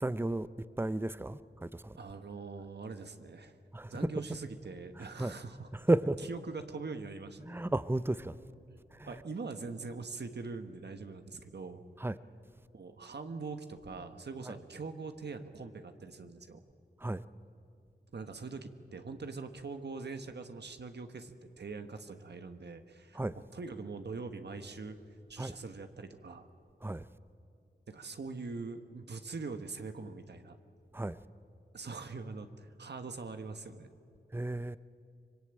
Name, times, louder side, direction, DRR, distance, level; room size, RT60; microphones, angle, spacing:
voice 1, 0.0-0.5 0.8-1.4 3.7-3.9 5.2-5.3 5.9-6.2 7.5-8.3 12.0-12.1 17.0-17.2 23.2-23.3 25.4-25.5 26.8-27.0 30.9-31.2 34.3-34.8, right 1 dB, 10° right, 0.7 m, -31 dB
voice 2, 2.0-3.6 3.9-5.7 6.2-7.6 9.1-11.8 12.7-16.6 18.1-25.0 25.3-26.5 27.9-30.6 31.7-33.9, right 4 dB, 70° right, 1.4 m, -43 dB
25.0 x 22.0 x 8.9 m
wide cardioid pair, 60°, 18 cm